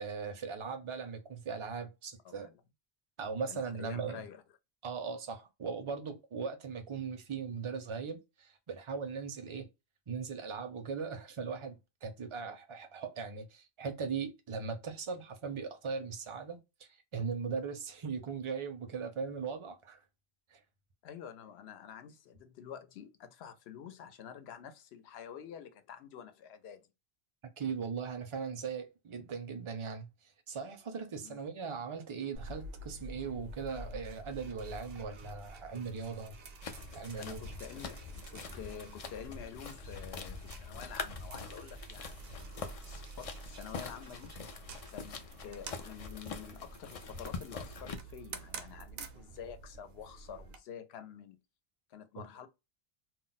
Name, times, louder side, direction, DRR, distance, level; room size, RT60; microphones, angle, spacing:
voice 1, 0.0-2.5 3.2-4.2 4.8-9.7 10.1-11.7 12.0-20.0 20.5-20.6 27.6-30.1 30.5-36.4 36.9-37.4 52.2-52.3, right 5 dB, 40° right, 0.5 m, -39 dB
voice 2, 2.2-2.6 3.5-4.4 21.0-26.9 31.2-31.4 37.2-44.3 44.9-51.4 51.9-52.5, left 8 dB, 85° left, 0.8 m, -48 dB
sound 1, 32.3-50.6, right 2 dB, 70° right, 0.8 m, -49 dB
sound 2, 36.6-48.0, left 4 dB, 55° left, 0.4 m, -44 dB
2.3 x 2.0 x 3.8 m
omnidirectional pair, 1.0 m